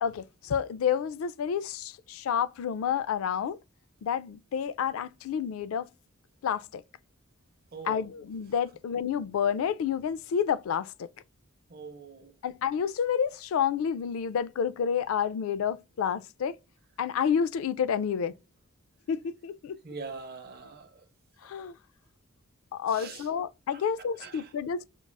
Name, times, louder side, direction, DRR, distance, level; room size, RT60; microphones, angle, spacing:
voice 1, 0.0-3.6 4.0-5.9 6.4-6.8 7.9-11.1 12.4-16.6 17.0-18.3 19.1-19.8 21.4-21.8 22.7-24.8, left 7 dB, 75° left, 0.3 m, -29 dB
voice 2, 7.7-8.0 11.7-12.3 19.8-21.0 21.6-21.7 22.9-23.3 23.7-24.5, right 4 dB, 50° right, 0.7 m, -43 dB
5.2 x 2.3 x 2.2 m
head